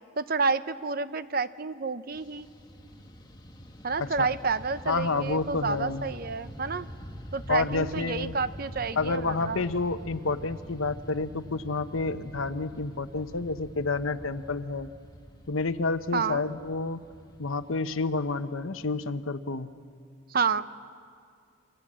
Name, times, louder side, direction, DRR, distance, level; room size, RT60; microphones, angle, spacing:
voice 1, 0.2-2.5 3.8-6.9 7.3-9.6 16.1-16.4 20.3-20.7, right 4 dB, 45° right, 13 dB, 0.7 m, -29 dB
Fixed-wing aircraft airplane, 2.1-19.5, equal, 20° left, 1.5 m, -45 dB
voice 2, 4.9-6.1 7.5-8.3 9.0-14.9 15.5-17.0 17.4-19.7, left 3 dB, 85° left, 11 dB, 1.0 m, -29 dB
28.5 x 25.5 x 7.6 m, 2.2 s
head